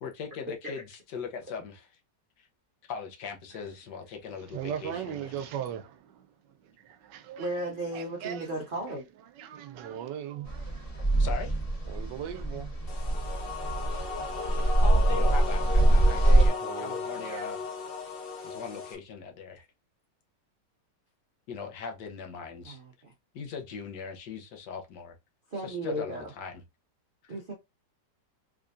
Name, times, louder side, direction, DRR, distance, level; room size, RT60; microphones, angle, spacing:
voice 1, 0.0-1.9 2.9-5.1 11.2-11.6 14.5-17.6 18.4-19.7 21.5-22.8 23.3-25.1 25.6-26.6, left 6 dB, 75° left, 1.4 m, -39 dB
voice 2, 4.3-8.6 9.2-11.2 11.8-13.2 13.6-14.1 14.4-14.8 15.1-15.5 15.8-17.5, right 9 dB, 85° right, 1.3 m, -40 dB
voice 3, 7.4-9.0 22.6-23.1 25.5-26.3 27.3-27.5, right 1 dB, 55° right, 0.5 m, -35 dB
sound 1, 10.5-16.5, right 1 dB, 20° left, 1.2 m, -24 dB
sound 2, 12.9-18.9, left 4 dB, 45° left, 0.8 m, -36 dB
3.6 x 3.4 x 2.5 m
omnidirectional pair, 1.9 m